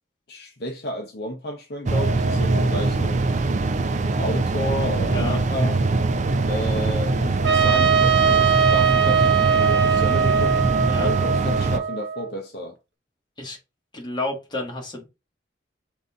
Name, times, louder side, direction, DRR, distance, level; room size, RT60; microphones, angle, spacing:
voice 1, 0.3-3.3 4.1-5.8 6.5-10.6 11.0-12.8, left 1 dB, 55° left, 0.7 m, -31 dB
sound 1, 1.9-11.8, right 3 dB, 40° right, 0.4 m, -22 dB
voice 2, 5.1-5.4 10.9-11.1 13.4-13.6 13.9-15.1, left 1 dB, 25° left, 1.3 m, -30 dB
Trumpet, 7.4-12.3, right 7 dB, 75° right, 0.9 m, -21 dB
4.0 x 2.7 x 3.5 m
head